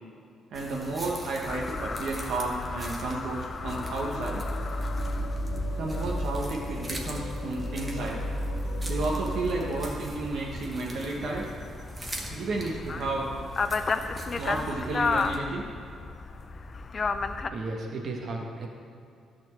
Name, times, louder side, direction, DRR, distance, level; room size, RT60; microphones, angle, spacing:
sound 1, 0.5-15.4, right 1 dB, 20° right, 1.3 m, -42 dB
voice 1, 0.5-4.4 5.7-8.2 8.9-11.5 12.3-13.3 14.4-15.6, right 2 dB, 70° right, -3 dB, 1.1 m, -32 dB
sound 2, 1.5-17.5, left 4 dB, 40° left, 0.5 m, -35 dB
sound 3, 3.6-9.9, equal, 90° left, 0.8 m, -33 dB
voice 2, 17.3-18.7, right 2 dB, 55° right, 1 dB, 1.4 m, -35 dB
11.0 x 4.4 x 7.2 m, 2.6 s
cardioid pair, 90°, 0 cm